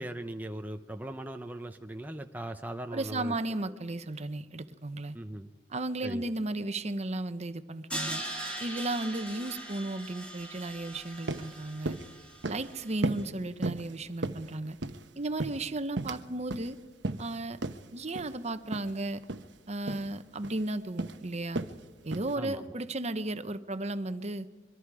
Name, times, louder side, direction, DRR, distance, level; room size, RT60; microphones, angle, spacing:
voice 1, 0.0-3.4 3.7-3.8 5.1-5.5 6.0-6.3 22.3-22.8, right 1 dB, 10° right, 5 dB, 0.7 m, -39 dB
voice 2, 2.9-5.2 5.7-8.2 8.6-12.0 12.4-14.8 15.2-16.8 17.2-17.6 17.9-19.2 19.7-21.6 22.0-24.5, right 2 dB, 35° right, 11 dB, 1.0 m, -34 dB
Crash cymbal, 7.9-12.9, right 1 dB, 5° left, 3.5 m, -40 dB
sound 1, 10.9-11.0 11.3-11.5 11.8-12.1 12.4-12.7 13.0-13.3 13.6-13.9 14.2-15.0 15.4-16.2 16.5-16.7 17.0-17.3 17.6-17.8 18.1-18.3 18.7-18.9 19.2-19.4 19.9-20.1 20.4-20.7 21.0-21.2 21.5-21.8 22.1-22.3, right 2 dB, 70° right, 1.1 m, -34 dB
25.0 x 23.5 x 4.9 m, 1.2 s
head